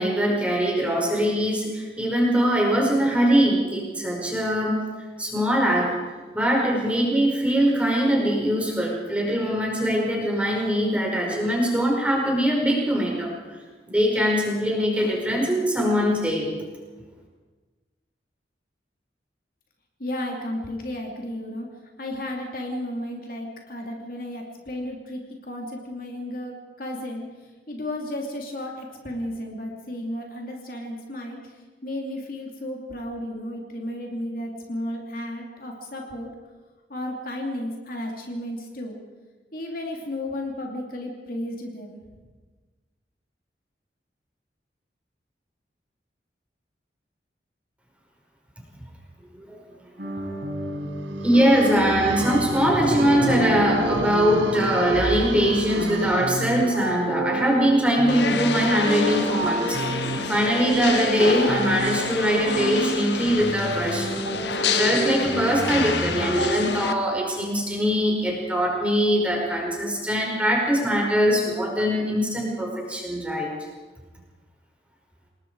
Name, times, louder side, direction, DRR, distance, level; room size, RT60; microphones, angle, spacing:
voice 1, 0.0-4.9 5.2-6.0 6.3-13.3 13.9-16.5 49.3-49.6 51.2-64.2 64.6-73.5, equal, 5° right, -2 dB, 5.2 m, -22 dB
voice 2, 20.0-21.7 22.0-36.3 36.9-39.0 39.5-42.0, left 1 dB, 50° left, 0 dB, 2.8 m, -33 dB
sound 1, 50.0-66.5, right 1 dB, 65° right, 5.8 m, -30 dB
sound 2, 51.1-57.0, right 3 dB, 85° right, 0.9 m, -30 dB
sound 3, 58.1-66.9, left 5 dB, 75° left, 1.4 m, -29 dB
28.0 x 20.0 x 4.8 m, 1.3 s
head